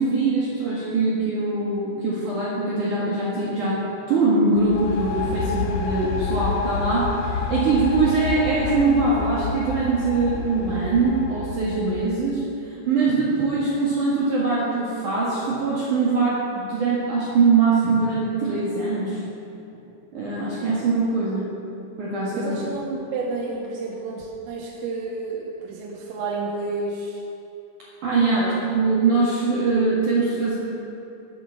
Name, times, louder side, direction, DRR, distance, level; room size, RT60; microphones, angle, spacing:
voice 1, 0.0-3.8 4.1-12.4 12.9-19.2 20.1-21.5 22.0-22.6 28.0-30.6, right 3 dB, 60° right, -8 dB, 2.3 m, -22 dB
sound 1, 4.6-12.3, left 5 dB, 85° left, 2.2 m, -29 dB
voice 2, 22.3-27.3 28.4-28.6, right 3 dB, 85° right, -3 dB, 3.6 m, -30 dB
10.5 x 7.8 x 7.1 m, 2.9 s
omnidirectional pair, 5.9 m